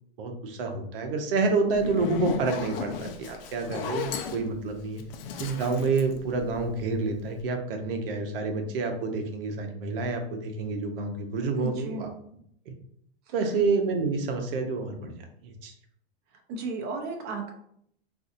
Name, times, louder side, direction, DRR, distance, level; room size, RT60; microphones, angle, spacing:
voice 1, 0.2-5.0 5.4-12.1 12.7-12.8 13.3-15.1 15.4-15.7, right 4 dB, 60° right, 4 dB, 0.8 m, -28 dB
Zipper (clothing), 1.7-7.0, left 6 dB, 65° left, 0.6 m, -35 dB
voice 2, 11.6-12.1 16.5-17.5, right 3 dB, 35° right, 3 dB, 0.7 m, -34 dB
3.8 x 2.6 x 2.6 m, 0.69 s
hypercardioid pair, 135°, 31 cm